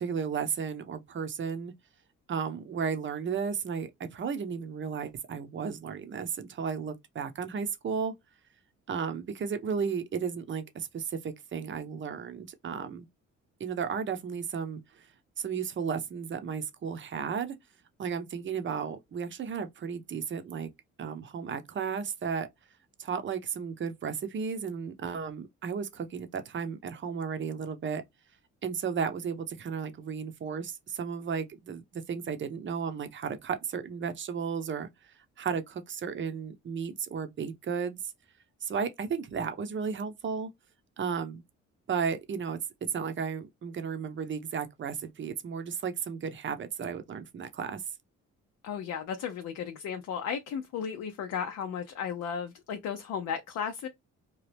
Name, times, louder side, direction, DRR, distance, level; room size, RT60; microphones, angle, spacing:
voice 1, 0.0-1.7 2.3-8.1 8.9-13.1 13.6-15.1 15.4-17.6 18.0-20.7 21.0-22.5 23.0-28.0 28.6-38.0 38.6-40.5 41.0-41.4 41.9-42.6 42.9-47.8, right 6 dB, 40° right, 0.7 m, -34 dB
voice 2, 48.6-53.9, left 7 dB, 65° left, 0.6 m, -35 dB
2.8 x 2.4 x 3.3 m
cardioid pair, 90°, 30 cm